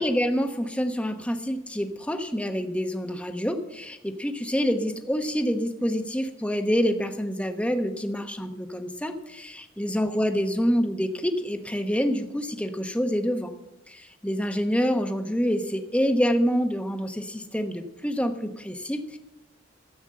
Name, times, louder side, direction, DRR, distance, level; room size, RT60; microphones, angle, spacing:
voice 1, 0.0-13.5 13.9-19.2, equal, 5° left, 6 dB, 1.0 m, -27 dB
14.0 x 8.2 x 7.6 m, 0.93 s
head